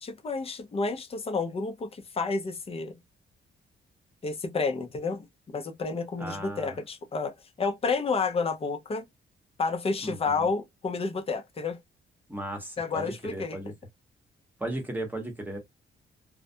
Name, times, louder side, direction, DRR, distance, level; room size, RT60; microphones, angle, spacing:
voice 1, 0.0-2.9 4.2-5.2 5.5-9.0 9.6-11.8 12.8-13.6, left 4 dB, 30° left, 0.6 m, -30 dB
voice 2, 6.2-6.8 10.0-10.5 12.3-13.0 13.3-13.7 14.6-15.6, right 1 dB, 10° right, 1.0 m, -36 dB
2.4 x 2.1 x 2.6 m
cardioid pair, 135°, 20 cm